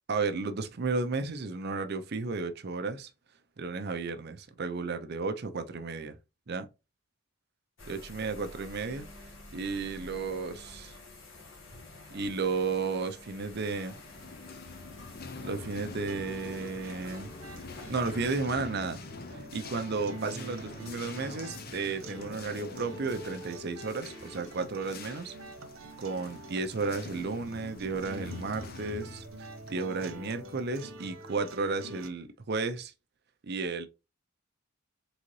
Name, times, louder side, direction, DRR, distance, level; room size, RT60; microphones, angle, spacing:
voice 1, 0.1-3.1 3.6-6.2 6.5-6.7 7.8-9.0 9.5-11.0 12.1-14.0 15.4-17.3 17.9-19.0 19.3-25.3 26.0-32.9 33.4-33.9, right 4 dB, 50° right, 0.6 m, -33 dB
sound 1, 7.8-18.4, left 2 dB, 65° left, 1.6 m, -49 dB
sound 2, 13.4-30.8, left 4 dB, 50° left, 0.6 m, -46 dB
sound 3, 16.1-32.1, right 1 dB, 90° right, 1.0 m, -46 dB
4.0 x 3.8 x 3.1 m
head